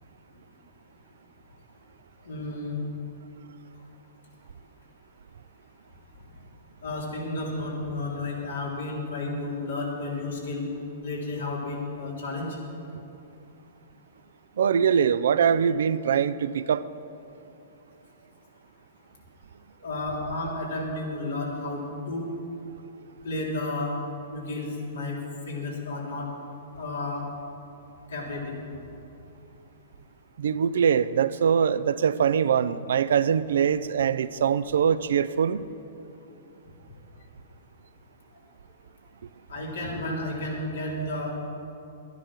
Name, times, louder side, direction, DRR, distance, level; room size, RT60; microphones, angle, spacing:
voice 1, 2.2-2.8 6.8-10.6 11.0-12.5 19.8-21.8 22.1-22.2 23.2-23.9 24.3-25.2 25.5-26.3 26.7-27.2 28.1-28.6 39.5-41.3, left 2 dB, 80° left, -2 dB, 3.3 m, -32 dB
voice 2, 14.6-16.8 30.4-35.6, right 7 dB, 75° right, 15 dB, 0.4 m, -23 dB
11.5 x 10.5 x 6.2 m, 2.8 s
hypercardioid pair, 125°, 0 cm